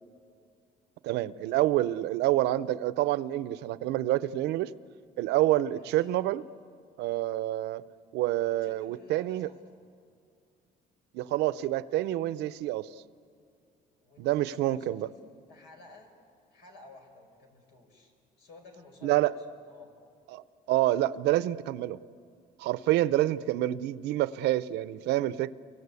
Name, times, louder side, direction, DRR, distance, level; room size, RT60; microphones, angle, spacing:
voice 1, 1.0-4.7 5.2-6.4 7.0-7.8 8.1-9.5 11.1-12.9 14.2-15.1 19.0-19.3 20.3-20.4 20.7-22.0 22.6-25.5, right 15 dB, 85° right, 16 dB, 0.7 m, -27 dB
voice 2, 5.7-6.1 8.6-9.8 14.0-15.1 15.5-16.1 16.5-19.9, left 3 dB, 85° left, 4 dB, 5.5 m, -53 dB
29.5 x 24.5 x 8.3 m, 2.4 s
cardioid pair, 110°, 17 cm